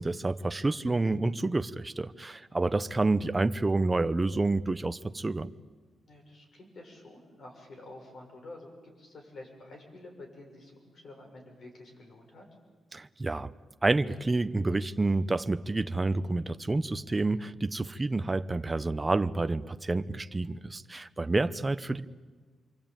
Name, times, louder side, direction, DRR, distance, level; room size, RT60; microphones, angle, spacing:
voice 1, 0.0-5.5 12.9-13.5 13.8-22.1, right 2 dB, 20° right, 11 dB, 0.8 m, -29 dB
voice 2, 6.1-12.5, left 2 dB, 50° left, 2 dB, 7.2 m, -49 dB
27.5 x 23.5 x 9.1 m, 1.4 s
cardioid pair, 125°, 0 cm